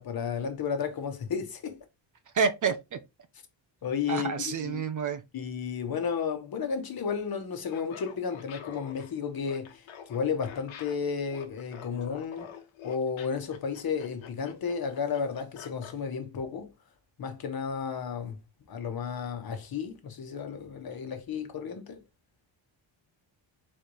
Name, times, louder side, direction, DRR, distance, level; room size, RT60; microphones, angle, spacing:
voice 1, 0.0-1.8 3.8-4.8 5.3-9.8 10.1-12.5 12.8-16.7 17.2-18.4 18.7-22.0, left 6 dB, 50° left, 1.2 m, -33 dB
voice 2, 2.3-3.0 4.1-5.2, right 5 dB, 40° right, 0.6 m, -28 dB
Laughter, 7.6-16.0, left 8 dB, 85° left, 1.2 m, -47 dB
4.1 x 3.2 x 4.0 m
cardioid pair, 130°, 46 cm